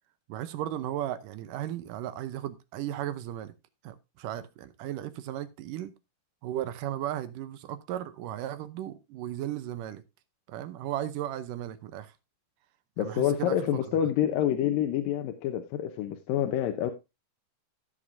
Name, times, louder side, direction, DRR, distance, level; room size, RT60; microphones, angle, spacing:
voice 1, 0.3-3.5 3.8-5.9 6.4-10.0 10.5-12.1 13.0-13.6, right 12 dB, 75° right, 2.3 m, -35 dB
voice 2, 13.0-16.9, left 10 dB, 85° left, 2.6 m, -27 dB
16.0 x 6.6 x 2.6 m
omnidirectional pair, 4.0 m